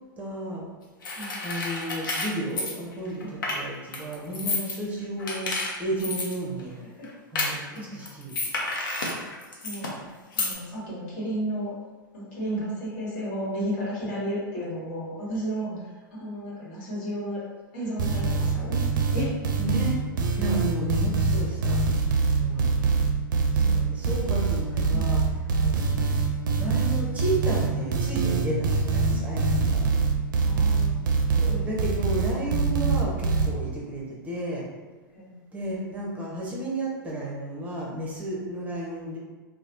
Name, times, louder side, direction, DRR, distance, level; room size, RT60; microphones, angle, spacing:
voice 1, 0.2-0.6 1.4-6.7 7.3-7.6 7.9-8.3 12.5-12.6 15.6-15.8 19.6-20.0 20.4-21.8 22.3-22.7 23.5-25.2 25.6-26.1 26.6-29.9 31.3-34.6 35.5-39.2, right 1 dB, 10° right, -3 dB, 0.8 m, -32 dB
sound 1, 1.0-3.6 3.9-4.7 5.2-6.3 6.6-6.7 7.0-7.1 7.3-9.9 10.3-10.5, left 3 dB, 65° left, 0.6 m, -30 dB
voice 2, 6.8-7.1 7.4-8.1 9.6-11.7 12.1-17.5 17.7-19.3 20.5-20.7 22.5-22.7 23.5-24.1 24.9-25.2 30.3-31.0 31.5-31.6 35.1-35.4, equal, 45° left, -7 dB, 1.4 m, -34 dB
sound 2, 18.0-33.5, right 4 dB, 60° right, 0.4 m, -24 dB
3.1 x 2.1 x 2.7 m, 1.2 s
figure-of-eight pair, 100°, 12 cm